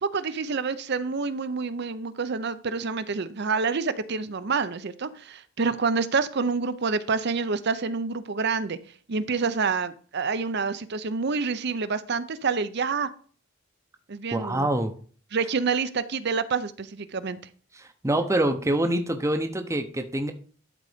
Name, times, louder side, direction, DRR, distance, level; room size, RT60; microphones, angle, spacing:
voice 1, 0.0-8.8 9.1-13.1 14.1-14.7 15.3-17.4, right 4 dB, 55° right, 13 dB, 0.7 m, -27 dB
voice 2, 14.3-14.9 17.7-20.3, right 1 dB, 15° right, 6 dB, 0.8 m, -25 dB
12.0 x 4.0 x 5.1 m, 0.43 s
head